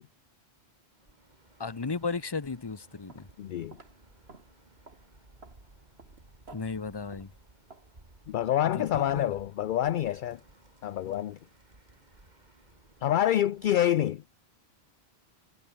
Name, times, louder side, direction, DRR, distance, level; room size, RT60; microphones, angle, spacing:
Bird, 0.9-14.0, right 2 dB, 45° right, 3.6 m, -59 dB
voice 1, 1.6-3.3 6.5-7.3 8.7-9.3, left 4 dB, 25° left, 0.9 m, -35 dB
sound 1, 3.1-3.4 3.7-8.1, right 3 dB, 80° right, 2.8 m, -55 dB
voice 2, 3.4-3.8 8.3-10.4 10.8-11.4 13.0-14.2, left 11 dB, 60° left, 0.6 m, -27 dB
omnidirectional pair, 1.1 m